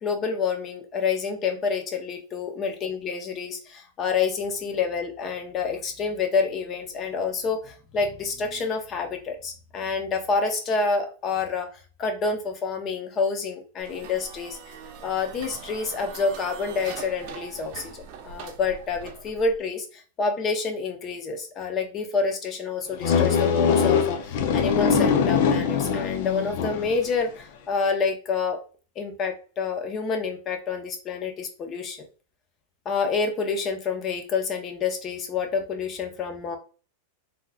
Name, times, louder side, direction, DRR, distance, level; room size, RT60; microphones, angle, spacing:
voice 1, 0.0-11.7 12.0-14.6 15.0-28.6 29.0-32.1 32.8-36.6, left 5 dB, 35° left, 5 dB, 0.8 m, -28 dB
sound 1, 13.8-19.6, right 6 dB, 55° right, 0.7 m, -41 dB
sound 2, 23.0-27.1, left 6 dB, 65° left, 0.5 m, -22 dB
3.7 x 2.8 x 2.2 m, 0.37 s
hypercardioid pair, 120°, 0 cm